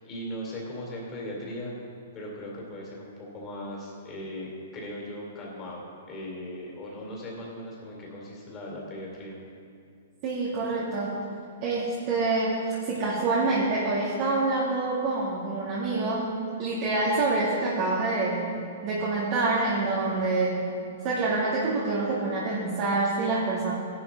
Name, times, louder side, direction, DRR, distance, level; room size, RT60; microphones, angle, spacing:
voice 1, 0.0-1.7 2.1-9.3, left 1 dB, 20° left, -3 dB, 3.1 m, -38 dB
voice 2, 10.2-11.2 11.6-18.5 18.8-20.7 21.0-23.7, right 3 dB, 40° right, -6 dB, 2.4 m, -26 dB
16.5 x 11.0 x 3.7 m, 2.4 s
hypercardioid pair, 155°, 0 cm